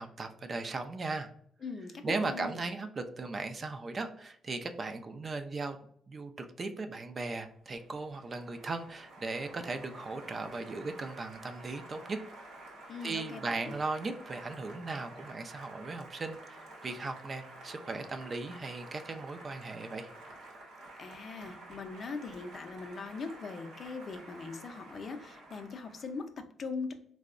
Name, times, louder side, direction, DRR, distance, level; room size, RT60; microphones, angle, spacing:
voice 1, 0.0-1.3 2.0-5.8 6.1-12.2 13.0-20.1, right 3 dB, 40° right, 7 dB, 0.3 m, -37 dB
voice 2, 1.6-2.6 12.9-13.7 21.0-26.9, left 4 dB, 50° left, 6 dB, 0.4 m, -41 dB
Applause, 7.5-26.3, right 2 dB, 85° right, 0.8 m, -51 dB
3.5 x 2.0 x 2.4 m, 0.64 s
cardioid pair, 90°, 0 cm